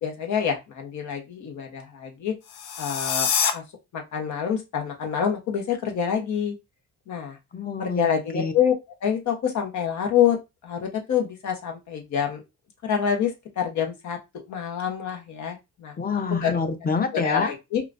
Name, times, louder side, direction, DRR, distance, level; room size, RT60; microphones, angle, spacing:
voice 1, 0.0-2.4 2.8-3.6 3.9-6.5 7.1-7.4 7.8-8.7 9.0-10.4 10.6-12.4 12.8-14.2 14.5-15.9 16.4-16.5 17.2-17.8, left 8 dB, 70° left, 1.1 m, -26 dB
sound 1, 2.4-3.5, left 7 dB, 90° left, 0.6 m, -25 dB
voice 2, 7.5-8.5 16.0-17.5, left 5 dB, 30° left, 0.7 m, -27 dB
4.9 x 2.3 x 2.5 m
cardioid pair, 90°, 30 cm